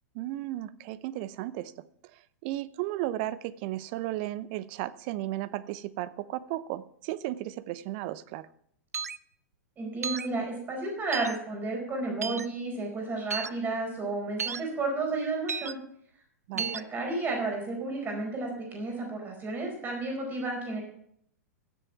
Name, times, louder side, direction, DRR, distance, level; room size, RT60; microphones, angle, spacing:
voice 1, 0.1-1.8 2.1-8.5 16.5-16.7, right 15 dB, 40° right, 17 dB, 0.6 m, -35 dB
sound 1, 8.9-9.2 10.0-10.3 11.1-11.4 12.2-12.5 13.3-13.5 14.4-14.6 15.5-15.7 16.6-16.8, right 6 dB, 75° right, 0.5 m, -33 dB
voice 2, 9.8-15.8 16.5-20.8, right 3 dB, 20° right, 1 dB, 4.7 m, -32 dB
15.5 x 7.7 x 5.8 m, 0.67 s
figure-of-eight pair, 100°, 9 cm